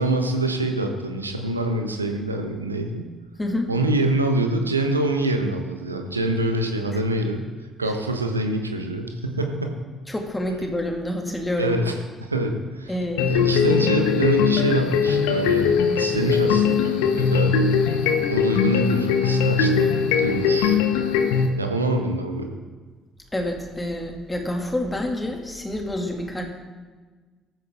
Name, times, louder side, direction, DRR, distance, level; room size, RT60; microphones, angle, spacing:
voice 1, 0.0-3.0 3.7-7.4 7.8-9.8 11.6-12.9 13.2-17.5 18.3-19.9 20.2-20.8 21.6-22.5, right 1 dB, 85° right, 4 dB, 1.0 m, -25 dB
voice 2, 3.4-3.7 10.1-11.8 12.9-13.3 23.3-26.4, left 1 dB, 15° left, 2 dB, 2.2 m, -27 dB
sound 1, 13.2-21.5, left 6 dB, 65° left, 1.0 m, -20 dB
14.0 x 9.4 x 3.6 m, 1.4 s
figure-of-eight pair, 50°, 0 cm